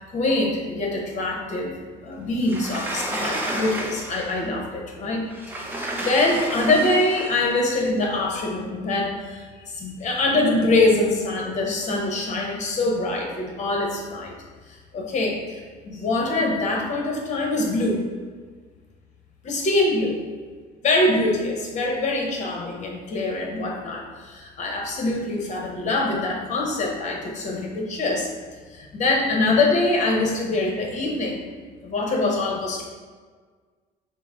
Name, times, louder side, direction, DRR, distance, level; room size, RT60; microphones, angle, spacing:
voice 1, 0.1-5.2 5.7-14.3 14.7-15.6 15.8-18.0 19.4-20.2 20.8-28.3 28.7-31.4 31.8-32.9, left 2 dB, 45° left, 0 dB, 1.0 m, -24 dB
Sliding door, 2.4-4.4 5.3-7.5, right 1 dB, 10° right, 0.6 m, -31 dB
5.9 x 2.1 x 3.7 m, 1.5 s
cardioid pair, 110°, 17 cm